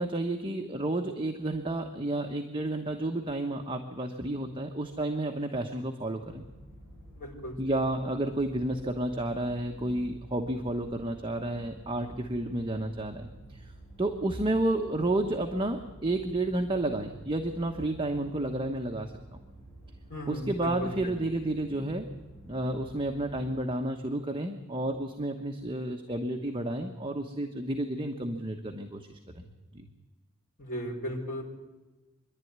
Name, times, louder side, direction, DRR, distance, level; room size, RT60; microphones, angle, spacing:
voice 1, 0.0-6.4 7.6-13.7 14.0-19.1 20.3-22.1 22.5-29.9, right 1 dB, 25° right, 3 dB, 1.1 m, -31 dB
sound 1, 6.2-23.6, right 1 dB, 10° left, 7.5 m, -50 dB
voice 2, 7.2-7.5 20.1-21.1 30.6-31.4, equal, 40° left, -3 dB, 4.7 m, -36 dB
25.0 x 11.5 x 9.5 m, 1.2 s
head